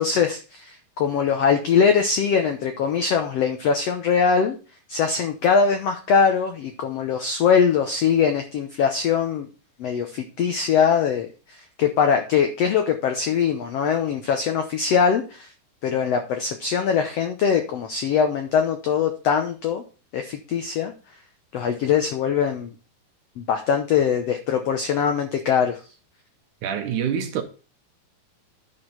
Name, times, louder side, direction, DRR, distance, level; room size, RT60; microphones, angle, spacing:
voice 1, 0.0-4.6 4.9-9.5 9.8-11.3 11.8-15.5 15.8-19.8 20.1-20.9 21.5-22.7 23.4-25.8, left 6 dB, 80° left, 1.4 m, -22 dB
voice 2, 26.6-27.4, right 8 dB, 70° right, 2.3 m, -26 dB
10.5 x 5.0 x 5.7 m
omnidirectional pair, 4.1 m